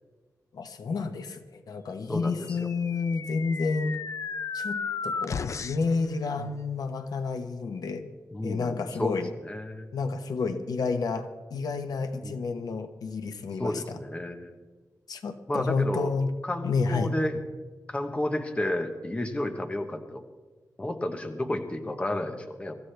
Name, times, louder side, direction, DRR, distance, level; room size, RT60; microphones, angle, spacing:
voice 1, 0.5-3.9 4.5-8.0 8.4-9.3 9.9-14.0 15.1-16.3 16.6-17.1, left 4 dB, 85° left, 7 dB, 1.2 m, -30 dB
voice 2, 2.1-2.7 6.4-6.5 8.3-9.2 9.4-9.9 12.2-12.4 13.6-14.6 15.5-16.1 16.4-17.4 17.9-20.2 20.8-22.8, left 1 dB, 20° left, 5 dB, 1.1 m, -31 dB
sound 1, 2.3-6.0, left 5 dB, 55° left, 0.5 m, -34 dB
24.0 x 14.5 x 3.4 m, 1.3 s
wide cardioid pair, 165°, 6 cm